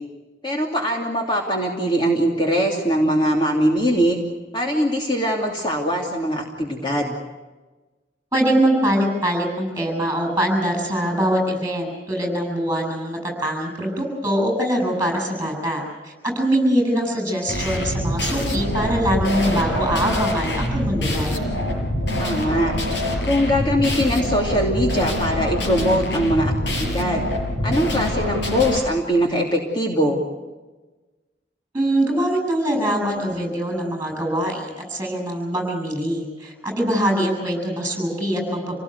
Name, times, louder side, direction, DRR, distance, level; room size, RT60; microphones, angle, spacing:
voice 1, 0.4-4.2 4.5-7.1 22.2-22.7 23.2-27.3 27.6-30.2, equal, 30° left, -1 dB, 2.8 m, -21 dB
voice 2, 8.3-21.3 31.7-38.8, equal, 15° right, 2 dB, 7.7 m, -23 dB
sound 1, 17.5-28.8, left 1 dB, 75° left, 5.3 m, -25 dB
28.0 x 18.5 x 8.2 m, 1.2 s
head